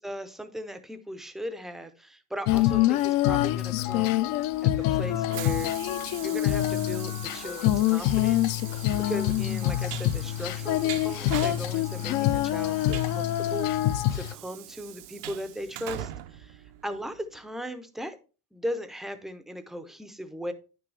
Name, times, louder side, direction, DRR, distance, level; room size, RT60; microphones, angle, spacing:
voice 1, 0.0-4.2 4.6-5.7 6.2-8.6 9.1-18.2 18.5-20.5, equal, ahead, 10 dB, 0.5 m, -38 dB
Female singing, 2.5-14.3, left 14 dB, 50° left, 0.5 m, -25 dB
Train, 4.2-17.3, right 14 dB, 70° right, 0.8 m, -42 dB
9.5 x 6.2 x 3.2 m, 0.34 s
cardioid pair, 130°, 47 cm